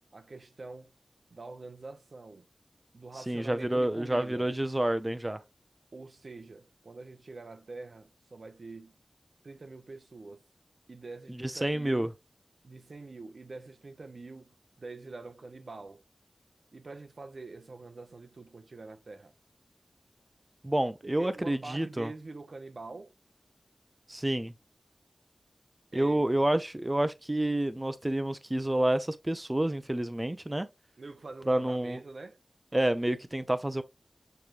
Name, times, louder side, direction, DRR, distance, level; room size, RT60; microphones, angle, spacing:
voice 1, 0.1-0.9 1.3-2.5 2.9-4.5 5.9-8.9 9.4-10.4 10.9-12.1 12.6-16.0 16.7-19.3 21.0-23.1 25.9-26.3 31.0-32.4, right 3 dB, 70° right, 0.6 m, -45 dB
voice 2, 3.3-5.4 11.4-12.1 20.6-22.1 24.1-24.5 25.9-30.7 31.5-32.0 32.7-33.8, right 1 dB, 20° right, 0.5 m, -29 dB
6.8 x 3.0 x 2.4 m
wide cardioid pair, 60°, 0 cm